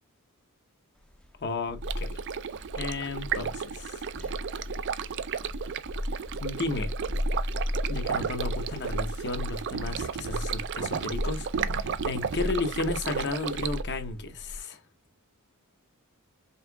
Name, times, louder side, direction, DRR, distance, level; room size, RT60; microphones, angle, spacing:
sound 1, 1.1-14.6, left 1 dB, 5° left, 0.5 m, -35 dB
voice 1, 1.4-2.1 2.7-4.0 6.4-6.9 7.9-14.8, left 3 dB, 50° left, 0.8 m, -33 dB
Stream, 1.8-13.8, right 7 dB, 55° right, 0.4 m, -34 dB
5.5 x 3.5 x 2.3 m
head